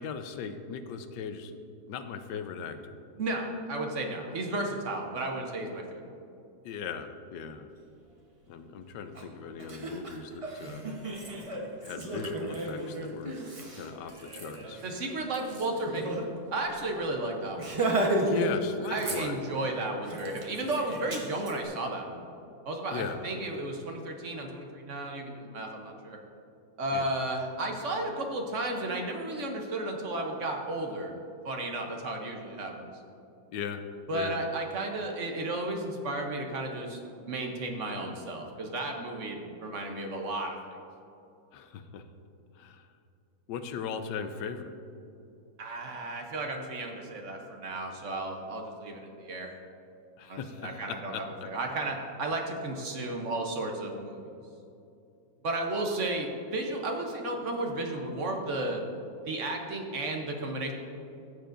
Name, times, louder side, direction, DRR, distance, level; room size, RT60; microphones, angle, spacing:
voice 1, 0.0-1.5 1.9-3.0 6.6-7.7 8.5-10.9 11.8-13.4 13.7-14.8 18.2-19.4 22.9-23.2 26.9-27.1 33.5-33.9 34.1-34.4 41.5-42.0 42.5-42.9 43.5-44.7 50.2-51.5, left 6 dB, 75° left, 8 dB, 1.2 m, -38 dB
voice 2, 3.2-6.0 14.8-16.2 16.5-17.9 18.9-22.2 22.6-26.2 26.8-31.1 31.4-32.9 34.1-40.6 45.6-49.5 50.2-54.4 55.4-58.8 59.3-60.7, right 2 dB, 50° right, 2 dB, 1.0 m, -33 dB
Laughter, 9.1-9.2 9.6-16.2 16.6-16.7 17.0-17.2 17.6-18.5 18.8-19.6 20.1-21.5, right 2 dB, 30° right, 0.6 m, -33 dB
14.5 x 6.8 x 2.5 m, 2.7 s
omnidirectional pair, 2.0 m